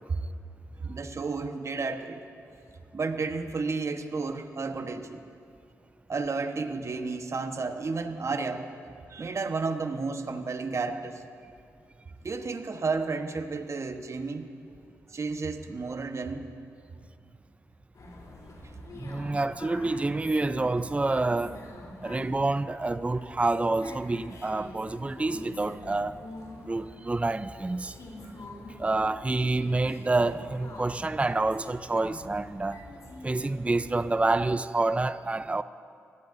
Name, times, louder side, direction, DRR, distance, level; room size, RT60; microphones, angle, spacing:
voice 1, 0.8-2.2 2.9-5.2 6.1-8.7 9.1-11.2 12.2-14.5 15.1-16.5, right 4 dB, 50° right, 1.2 m, -32 dB
sound 1, 17.9-34.5, left 2 dB, 60° left, 3.5 m, -46 dB
voice 2, 18.9-21.6 22.0-26.2 26.6-28.0 28.8-32.8 33.2-35.6, right 2 dB, 20° right, 0.5 m, -28 dB
25.0 x 17.5 x 2.7 m
hypercardioid pair, 40°, 7 cm